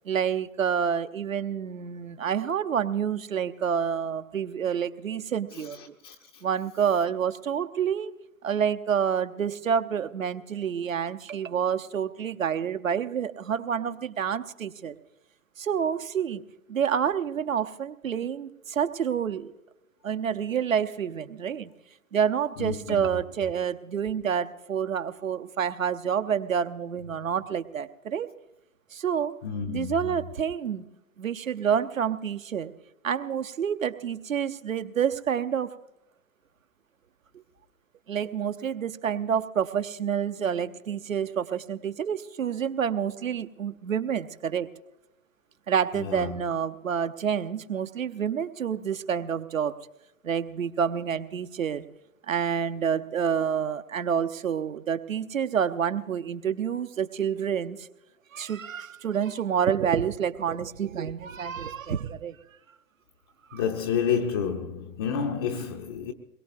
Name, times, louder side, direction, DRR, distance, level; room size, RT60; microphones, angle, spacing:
voice 1, 0.0-5.8 6.4-8.1 8.4-15.0 15.6-16.4 16.7-19.5 20.0-21.7 22.1-28.3 28.9-29.3 29.7-30.8 31.2-32.7 33.0-35.7 38.1-44.7 45.7-49.8 50.2-51.8 52.3-57.9 58.3-62.4 63.5-63.6, right 8 dB, 65° right, 1.0 m, -28 dB
voice 2, 5.5-6.4 22.6-23.0 29.4-30.2 45.9-46.4 63.5-66.1, left 7 dB, 20° left, 0.5 m, -30 dB
23.5 x 21.5 x 2.7 m
figure-of-eight pair, 115°, 43 cm